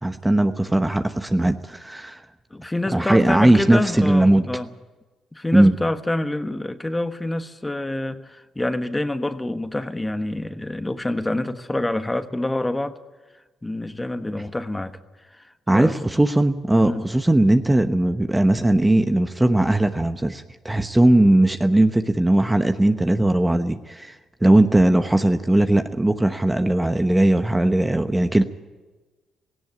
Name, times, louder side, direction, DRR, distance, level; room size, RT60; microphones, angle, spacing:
voice 1, 0.0-2.2 2.9-4.4 5.5-5.7 15.7-28.4, right 1 dB, 10° right, 1.0 m, -19 dB
voice 2, 2.5-4.7 5.3-12.9 13.6-15.0 15.3-16.2 16.8-17.0, left 1 dB, 15° left, 1.3 m, -27 dB
17.5 x 16.5 x 9.6 m
cardioid pair, 90°, 0 cm